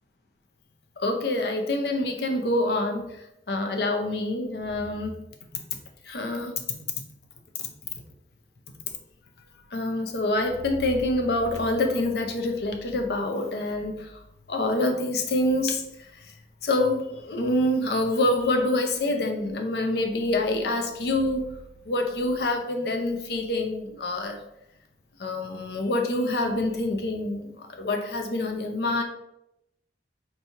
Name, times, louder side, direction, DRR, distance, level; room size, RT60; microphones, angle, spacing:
voice 1, 1.0-3.1 3.5-5.2 5.5-5.6 6.1-6.5 6.9-7.0 9.7-14.1 14.5-15.8 16.6-21.6 21.9-24.4 25.2-29.0, left 1 dB, 65° left, 4 dB, 0.5 m, -26 dB
4.5 x 3.0 x 2.7 m, 0.86 s
head